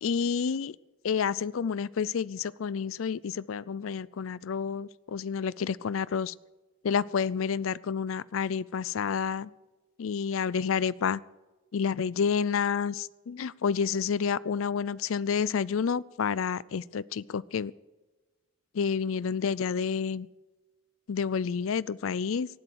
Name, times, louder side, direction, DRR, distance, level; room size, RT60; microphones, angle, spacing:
voice 1, 0.0-0.8 1.0-6.3 6.8-9.5 10.0-11.2 11.7-17.7 18.7-20.3 21.1-22.5, left 6 dB, 80° left, 21 dB, 0.4 m, -29 dB
18.5 x 12.5 x 4.7 m, 1.2 s
head